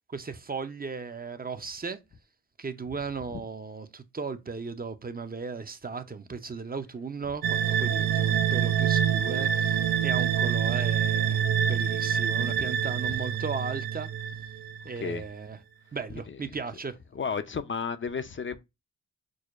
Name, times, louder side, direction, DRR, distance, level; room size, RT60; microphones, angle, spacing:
voice 1, 0.1-2.0 2.6-14.1 14.8-15.6 15.9-17.0, right 5 dB, 25° right, 0.6 m, -36 dB
sound 1, 7.4-15.0, right 9 dB, 70° right, 0.6 m, -26 dB
voice 2, 17.1-18.6, left 5 dB, 30° left, 0.5 m, -32 dB
6.2 x 2.1 x 2.4 m
supercardioid pair, 45°, 38 cm